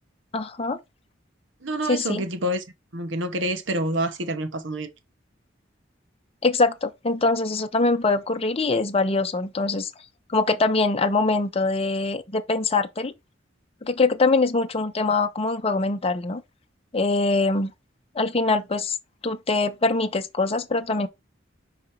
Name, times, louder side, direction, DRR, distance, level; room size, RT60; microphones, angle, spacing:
voice 1, 0.3-0.8 1.9-2.2 6.4-9.9 10.3-13.1 13.8-16.4 16.9-17.7 18.1-19.0 19.2-21.1, left 3 dB, 30° left, 0.7 m, -23 dB
voice 2, 1.6-2.6 2.9-4.9, right 1 dB, 70° right, 1.1 m, -27 dB
5.0 x 4.3 x 5.0 m
head